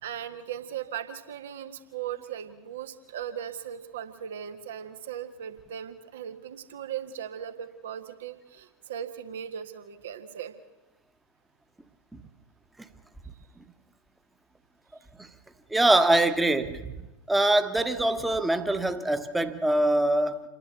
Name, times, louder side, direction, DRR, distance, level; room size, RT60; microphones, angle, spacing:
voice 1, 0.0-10.5, right 9 dB, 60° right, 1.6 m, -38 dB
voice 2, 15.7-16.9 17.3-20.4, right 1 dB, 5° right, 1.3 m, -23 dB
28.0 x 11.0 x 8.4 m
figure-of-eight pair, 90°, 0 cm